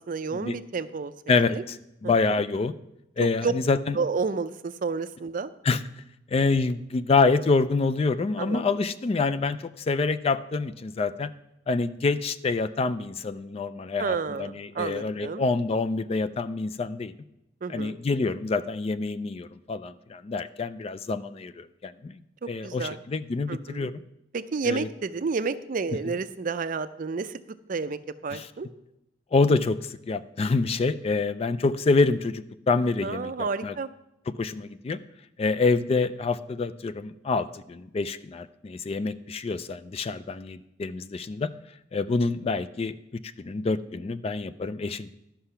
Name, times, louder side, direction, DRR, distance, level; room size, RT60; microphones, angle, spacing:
voice 1, 0.0-1.6 2.0-2.4 3.4-3.5 3.9-5.5 8.4-8.7 14.0-15.5 17.6-18.0 22.4-23.0 23.5-23.9 24.3-27.4 27.7-28.7 33.0-33.9, right 4 dB, 45° right, 13 dB, 0.4 m, -31 dB
voice 2, 1.3-1.8 2.0-2.7 3.2-4.0 5.6-5.8 6.3-11.3 11.7-17.1 17.7-22.2 22.5-23.9 24.6-24.9 28.3-28.5 29.3-33.7 34.4-35.0 35.4-41.5 41.9-42.9 43.4-45.1, left 3 dB, 30° left, 14 dB, 0.3 m, -26 dB
11.5 x 5.8 x 5.6 m, 0.86 s
head